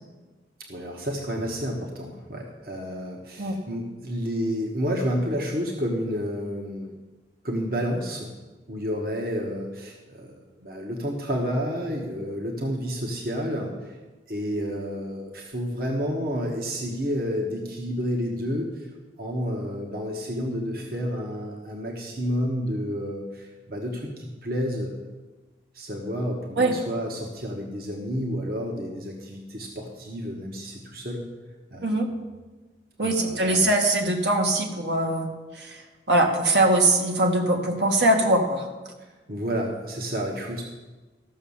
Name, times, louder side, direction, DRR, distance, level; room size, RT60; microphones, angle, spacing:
voice 1, 0.7-6.9 7.4-8.3 8.7-14.0 14.3-18.9 19.2-25.0 25.7-31.2 31.7-32.2 33.0-33.7 39.0-40.6, equal, 55° right, 0 dB, 1.4 m, -30 dB
voice 2, 33.0-35.3 35.6-35.7 36.1-38.6, right 1 dB, 70° right, 2 dB, 1.6 m, -21 dB
14.0 x 6.4 x 7.1 m, 1.2 s
head